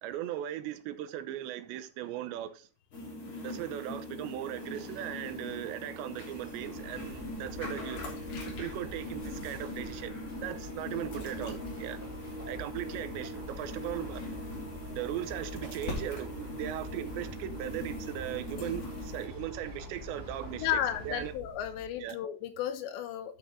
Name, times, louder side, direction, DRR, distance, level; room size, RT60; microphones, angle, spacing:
voice 1, 0.0-2.7 3.4-8.1 8.4-12.1 12.5-14.2 15.0-21.3 22.0-22.2, right 12 dB, 85° right, 3.1 m, -38 dB
sound 1, 2.9-19.3, left 1 dB, 30° left, 3.5 m, -42 dB
sound 2, 4.6-21.3, right 2 dB, 5° left, 4.2 m, -50 dB
sound 3, 6.3-22.1, left 2 dB, 60° left, 4.8 m, -45 dB
voice 2, 20.5-23.4, left 10 dB, 80° left, 3.3 m, -33 dB
10.5 x 7.3 x 3.8 m
omnidirectional pair, 5.0 m